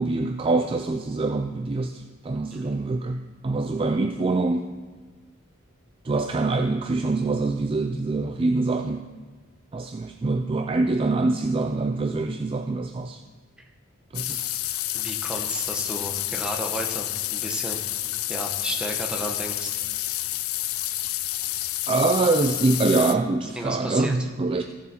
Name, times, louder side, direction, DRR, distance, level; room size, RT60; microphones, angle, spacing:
voice 1, 0.0-4.7 6.0-9.0 9.7-13.2 14.1-14.6 21.9-24.6, right 3 dB, 25° right, 6 dB, 0.3 m, -24 dB
sound 1, 14.1-23.1, left 15 dB, 80° left, 0.4 m, -29 dB
voice 2, 14.9-17.8 18.3-19.8 23.4-24.2, right 1 dB, 5° right, 1 dB, 1.1 m, -33 dB
15.5 x 7.1 x 4.4 m, 1.5 s
head